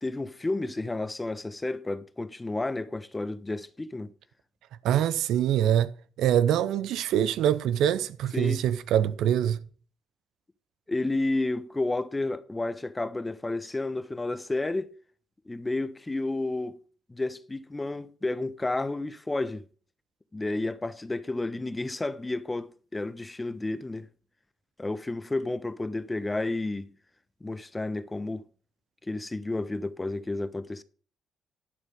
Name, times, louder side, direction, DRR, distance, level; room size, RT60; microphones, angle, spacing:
voice 1, 0.0-4.1 8.3-8.6 10.9-14.9 15.5-16.8 17.1-19.6 20.3-24.1 24.8-26.9 27.4-28.4 29.1-30.8, left 2 dB, 20° left, 1.1 m, -31 dB
voice 2, 4.8-5.9 6.2-9.6, right 10 dB, 75° right, 0.7 m, -24 dB
11.5 x 6.5 x 5.3 m
hypercardioid pair, 50°, 0 cm